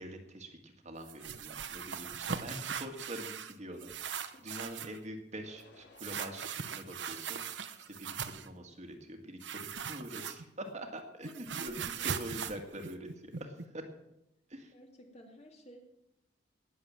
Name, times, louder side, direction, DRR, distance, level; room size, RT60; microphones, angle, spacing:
voice 1, 0.0-13.8 14.5-14.7, right 1 dB, 40° right, 4 dB, 2.0 m, -45 dB
sound 1, 1.0-3.5 3.8-5.0 6.0-8.5 9.4-10.7 11.0-13.6, right 7 dB, 75° right, 1.0 m, -40 dB
sound 2, 5.4-6.5 7.0-8.1 8.6-9.1, left 2 dB, 70° left, 2.5 m, -61 dB
voice 2, 11.2-12.2 14.7-15.8, equal, 35° left, 2 dB, 2.8 m, -56 dB
19.0 x 7.4 x 7.4 m, 0.84 s
head